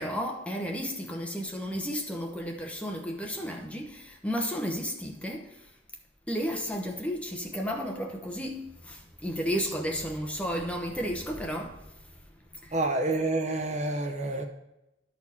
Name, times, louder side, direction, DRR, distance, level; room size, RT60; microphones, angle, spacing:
voice 1, 0.0-5.5 6.3-11.8 12.6-12.7, equal, 5° left, 0.9 m, -33 dB
voice 2, 12.7-14.5, right 2 dB, 35° right, 0.7 m, -28 dB
12.5 x 4.3 x 4.3 m
head